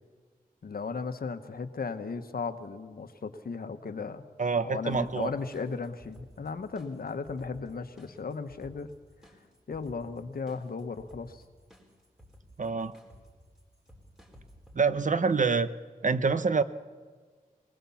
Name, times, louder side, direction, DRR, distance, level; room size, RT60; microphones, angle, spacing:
voice 1, 0.6-4.2 4.6-8.9 9.7-11.4, left 4 dB, 80° left, 9 dB, 1.2 m, -36 dB
voice 2, 4.4-5.3 12.6-12.9 14.7-15.7 16.0-16.6, right 4 dB, 55° right, 12 dB, 0.9 m, -26 dB
sound 1, 4.9-14.8, equal, 5° right, 4.6 m, -56 dB
21.0 x 19.0 x 7.1 m, 1.5 s
wide cardioid pair, 60°, 15 cm